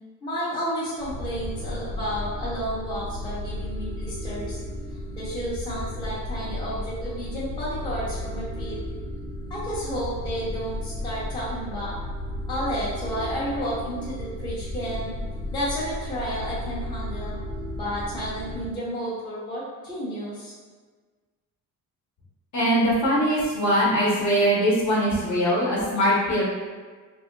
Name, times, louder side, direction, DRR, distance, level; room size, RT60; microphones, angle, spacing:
voice 1, 0.2-4.6 5.2-8.8 9.5-11.9 12.5-15.1 15.5-17.4 17.8-20.5, equal, 10° left, -9 dB, 0.5 m, -31 dB
sound 1, 1.0-18.7, left 1 dB, 90° left, 0.6 m, -34 dB
voice 2, 22.5-26.4, equal, 50° left, -6 dB, 0.8 m, -21 dB
2.7 x 2.7 x 2.5 m, 1.4 s
cardioid pair, 140°, 38 cm